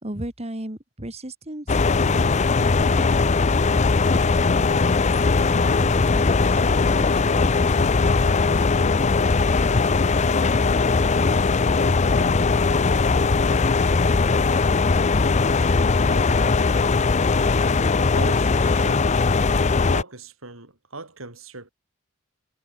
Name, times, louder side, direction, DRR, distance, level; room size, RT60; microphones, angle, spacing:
voice 1, 0.0-1.8 2.1-8.5, right 1 dB, 30° right, 2.9 m, -38 dB
sound 1, 1.7-20.0, left 4 dB, 35° left, 0.6 m, -20 dB
voice 2, 16.0-17.0 17.6-19.1 19.7-21.7, right 2 dB, 90° right, 6.9 m, -39 dB
head